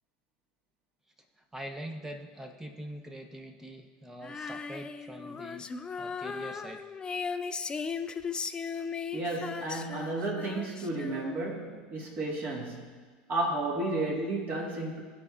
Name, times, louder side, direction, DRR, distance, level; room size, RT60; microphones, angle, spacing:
voice 1, 1.5-5.7 6.0-6.8, equal, 10° right, 4 dB, 0.7 m, -43 dB
Female singing, 4.2-11.6, left 5 dB, 20° left, 0.3 m, -37 dB
voice 2, 9.1-13.0 13.3-15.0, right 2 dB, 40° right, -2 dB, 1.7 m, -32 dB
13.5 x 4.5 x 2.4 m, 1.5 s
hypercardioid pair, 90°, 4 cm